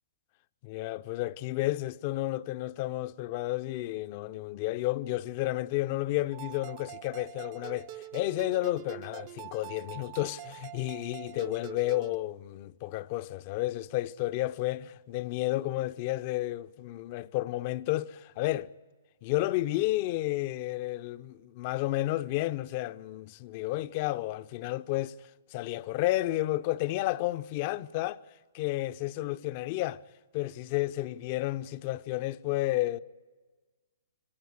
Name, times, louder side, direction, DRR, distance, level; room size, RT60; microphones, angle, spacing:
voice 1, 0.6-18.7 19.2-25.1 25.5-28.2 28.5-30.0 30.3-33.0, left 17 dB, 45° left, 0.7 m, -31 dB
sound 1, 6.3-12.2, right 15 dB, 35° right, 0.7 m, -44 dB
23.5 x 18.5 x 10.0 m
hypercardioid pair, 120°, 0 cm